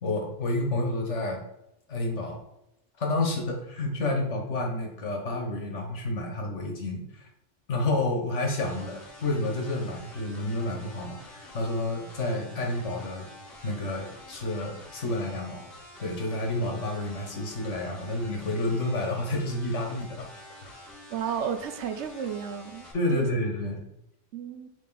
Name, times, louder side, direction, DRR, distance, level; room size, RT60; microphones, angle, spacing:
voice 1, 0.0-1.4 1.9-2.4 3.0-7.3 7.7-13.3 13.6-15.6 16.0-20.4 22.9-23.8, left 2 dB, 75° left, 2 dB, 1.7 m, -30 dB
sound 1, 8.6-22.9, left 1 dB, 55° left, 1.6 m, -48 dB
voice 2, 21.1-22.9 23.1-23.3 24.3-24.7, right 7 dB, 70° right, 9 dB, 0.9 m, -32 dB
7.4 x 3.7 x 3.9 m, 0.85 s
omnidirectional pair, 1.2 m